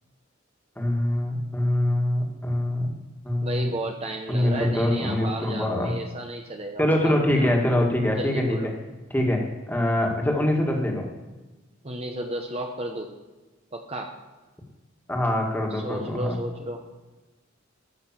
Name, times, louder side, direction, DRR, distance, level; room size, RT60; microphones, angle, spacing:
voice 1, 0.8-2.9 3.2-3.7 4.3-5.9 6.8-8.7 9.1-11.1 15.1-16.4, left 1 dB, 10° left, 0 dB, 1.9 m, -24 dB
voice 2, 3.4-7.6 8.2-8.7 11.8-13.1 13.7-14.1 15.7-16.8, right 1 dB, 30° right, 2 dB, 1.0 m, -33 dB
13.0 x 6.4 x 7.4 m, 1.2 s
head